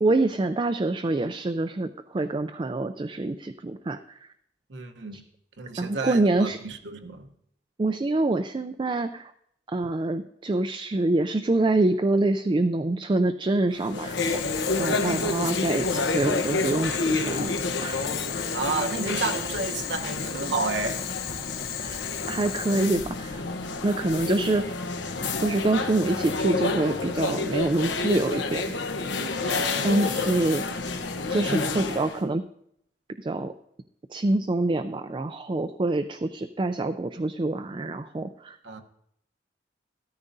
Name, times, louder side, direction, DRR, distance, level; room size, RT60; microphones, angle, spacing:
voice 1, 0.0-4.2 5.1-5.2 5.8-6.6 7.8-9.3 9.7-14.2 14.8-18.1 21.8-22.0 22.3-23.4 23.8-24.7 25.2-28.6 29.8-30.6 31.3-32.4 33.2-33.5 34.1-38.6, right 2 dB, 25° right, 0.4 m, -26 dB
voice 2, 4.7-5.2 5.6-7.3 14.8-15.1 18.5-21.0 29.4-30.7 38.6-38.8, right 3 dB, 80° right, 1.0 m, -31 dB
sound 1, 13.7-32.2, left 3 dB, 85° left, 1.0 m, -29 dB
Boiling, 14.2-22.9, left 8 dB, 55° left, 0.8 m, -35 dB
14.0 x 13.5 x 2.7 m
head